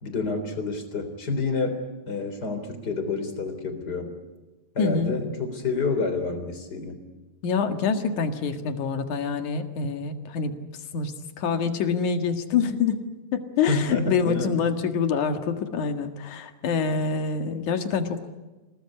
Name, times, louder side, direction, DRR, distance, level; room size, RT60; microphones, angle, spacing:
voice 1, 0.0-1.8 2.1-4.1 4.8-7.0 13.7-14.5, left 3 dB, 25° left, 8 dB, 3.7 m, -28 dB
voice 2, 4.8-5.1 7.4-10.6 10.9-13.0 13.3-18.3, left 5 dB, 60° left, 7 dB, 3.0 m, -26 dB
28.0 x 19.0 x 9.9 m, 1.2 s
omnidirectional pair, 4.4 m